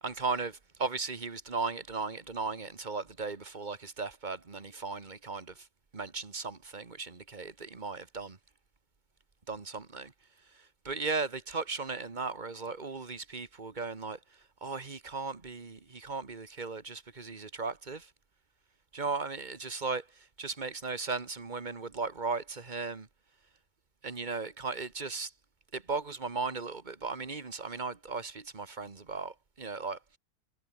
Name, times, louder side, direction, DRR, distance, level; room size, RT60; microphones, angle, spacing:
voice 1, 0.0-5.7 5.9-8.4 9.5-10.1 10.5-14.2 14.6-18.1 18.9-23.1 24.0-25.3 25.7-30.2, right 4 dB, 25° right, 1.5 m, -36 dB
omnidirectional pair, 2.2 m